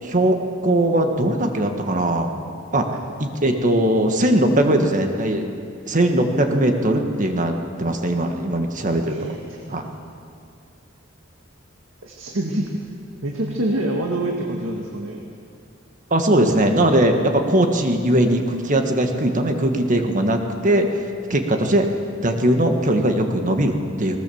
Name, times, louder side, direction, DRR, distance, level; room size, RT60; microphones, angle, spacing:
voice 1, 0.0-2.3 2.7-2.9 3.2-5.4 5.9-7.5 7.8-9.2 9.7-9.8 16.1-20.9 21.3-21.9 22.2-24.2, right 1 dB, 40° right, 4 dB, 1.7 m, -20 dB
voice 2, 9.1-9.9 12.0-12.8 13.2-15.2, right 1 dB, 90° right, 0 dB, 2.0 m, -26 dB
19.5 x 19.5 x 7.1 m, 2.4 s
head